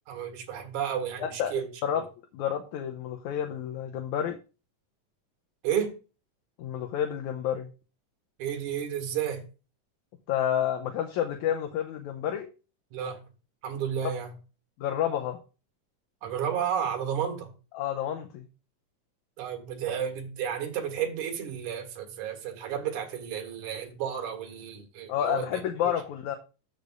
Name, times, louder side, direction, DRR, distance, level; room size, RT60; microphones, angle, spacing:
voice 1, 0.1-1.7 5.6-5.9 8.4-9.4 12.9-13.2 13.6-14.3 16.2-17.5 19.4-25.9, right 8 dB, 65° right, 3 dB, 3.0 m, -32 dB
voice 2, 1.2-1.5 1.8-2.0 2.3-4.4 6.6-7.7 10.3-12.5 14.0-14.1 14.8-15.4 17.7-18.5 25.1-26.4, left 10 dB, 75° left, 5 dB, 1.9 m, -29 dB
13.0 x 6.8 x 2.5 m, 0.34 s
omnidirectional pair, 3.9 m